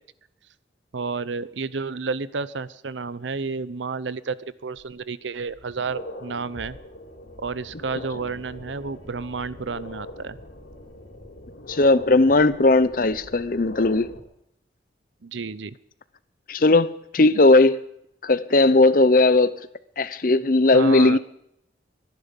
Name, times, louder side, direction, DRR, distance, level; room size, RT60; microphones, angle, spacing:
voice 1, 0.9-4.4 4.6-6.8 7.4-10.4 15.2-15.7 20.7-21.2, right 4 dB, 85° right, 17 dB, 0.7 m, -31 dB
sound 1, 4.8-4.9 5.4-14.2, left 1 dB, 85° left, 3.3 m, -41 dB
voice 2, 11.7-14.1 16.5-17.8 18.2-19.5 20.0-21.2, left 2 dB, 50° left, 16 dB, 0.7 m, -17 dB
23.0 x 10.5 x 5.3 m, 0.76 s
head